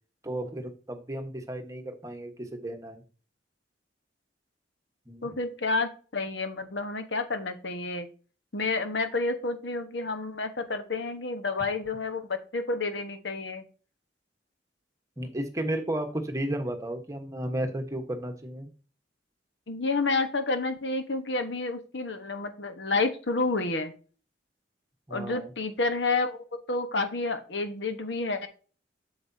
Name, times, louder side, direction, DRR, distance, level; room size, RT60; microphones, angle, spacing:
voice 1, 0.2-3.0 5.1-5.4 15.2-18.7 25.1-25.5, right 1 dB, 15° right, 5 dB, 1.3 m, -33 dB
voice 2, 5.2-8.1 8.5-13.6 19.7-23.9 25.1-28.5, left 3 dB, 70° left, 8 dB, 1.3 m, -30 dB
8.5 x 7.0 x 2.8 m, 0.37 s
head